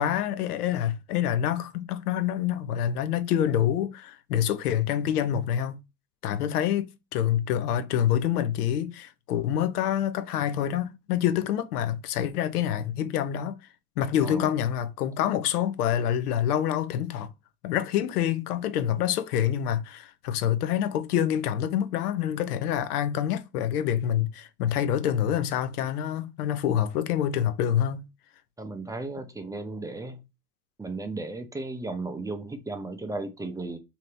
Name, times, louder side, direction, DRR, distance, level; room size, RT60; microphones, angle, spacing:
voice 1, 0.0-5.8 6.2-13.6 14.0-17.3 17.6-28.0, left 10 dB, 90° left, 0.6 m, -26 dB
voice 2, 14.2-14.5 28.6-30.2 30.8-33.8, right 2 dB, 10° right, 0.4 m, -35 dB
2.8 x 2.7 x 3.3 m
hypercardioid pair, 85°, 45 cm